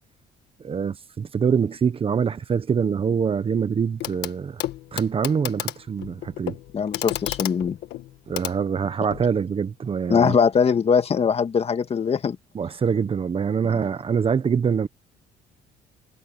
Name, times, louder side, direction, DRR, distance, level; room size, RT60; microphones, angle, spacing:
voice 1, 0.6-4.6 4.9-6.6 8.3-10.4 12.5-14.9, right 6 dB, 35° right, 1.2 m, -24 dB
Clock, 4.0-4.3 4.6-9.3 10.5-10.6, left 15 dB, 80° left, 1.5 m, -33 dB
voice 2, 6.7-7.8 10.1-12.4, left 6 dB, 35° left, 1.9 m, -21 dB
cardioid pair, 110°, 17 cm